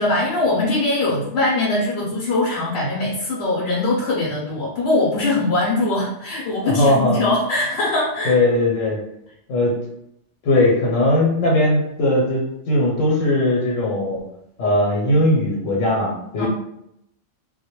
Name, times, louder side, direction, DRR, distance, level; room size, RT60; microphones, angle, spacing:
voice 1, 0.0-8.3 16.4-16.5, left 2 dB, 65° left, -5 dB, 0.7 m, -21 dB
voice 2, 6.6-7.3 8.2-9.0 9.5-9.8 10.4-14.2 14.6-16.5, left 1 dB, 85° left, -3 dB, 1.0 m, -19 dB
2.2 x 2.1 x 2.9 m, 0.78 s
omnidirectional pair, 1.3 m